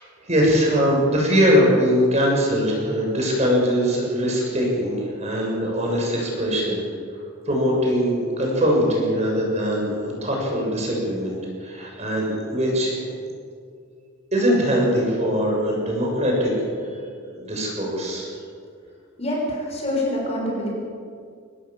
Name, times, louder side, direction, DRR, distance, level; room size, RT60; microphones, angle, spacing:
voice 1, 0.3-6.8 7.5-13.1 14.3-16.5 17.3-18.3, equal, 30° right, -2 dB, 6.8 m, -21 dB
voice 2, 19.2-20.7, left 1 dB, 30° left, -2 dB, 6.7 m, -25 dB
25.0 x 18.5 x 7.4 m, 2.2 s
head